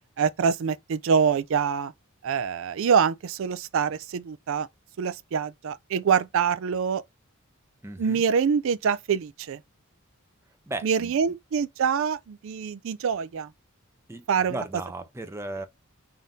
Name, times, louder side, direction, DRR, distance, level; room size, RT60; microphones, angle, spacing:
voice 1, 0.2-1.9 2.2-4.7 5.0-7.0 8.0-9.6 10.8-13.5 14.3-14.5, right 6 dB, 65° right, 0.4 m, -25 dB
voice 2, 7.8-8.2 10.7-11.2 14.1-15.7, right 2 dB, 10° right, 0.6 m, -36 dB
3.7 x 2.7 x 3.6 m
head